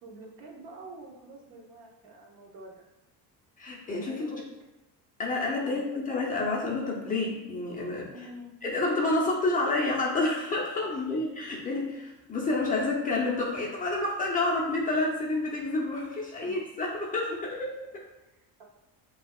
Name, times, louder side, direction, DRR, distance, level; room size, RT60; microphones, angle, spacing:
voice 1, 0.0-2.7 4.1-4.4 5.6-5.9 8.1-8.6 10.9-11.0 16.4-16.6 18.2-18.6, right 2 dB, 65° right, -1 dB, 1.1 m, -47 dB
voice 2, 3.6-4.4 5.2-8.1 8.6-18.0, left 2 dB, 20° left, -3 dB, 0.6 m, -29 dB
7.2 x 2.8 x 2.4 m, 0.95 s
cardioid pair, 165°, 38 cm